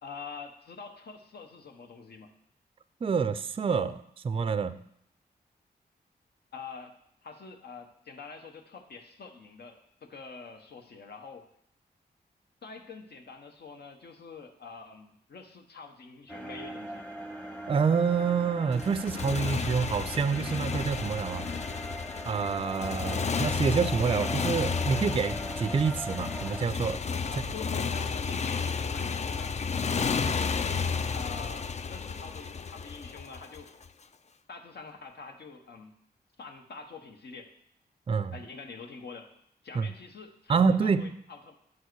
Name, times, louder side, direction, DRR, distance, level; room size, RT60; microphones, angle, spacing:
voice 1, 0.0-2.3 6.5-6.9 7.2-11.5 12.6-17.1 27.2-29.6 29.9-30.8 31.1-33.7 34.5-35.9 36.4-37.5 38.3-39.3 39.6-41.5, left 4 dB, 70° left, 5 dB, 1.0 m, -46 dB
voice 2, 3.0-4.0 4.2-4.8 17.7-21.5 22.2-27.0 38.1-38.4 39.8-39.9 40.5-41.1, right 5 dB, 35° right, 13 dB, 0.4 m, -27 dB
sound 1, 16.3-26.7, equal, 5° left, 0.9 m, -41 dB
Motorcycle, 18.7-33.9, left 5 dB, 40° left, 0.4 m, -32 dB
9.6 x 4.6 x 4.6 m, 0.72 s
cardioid pair, 60°, 17 cm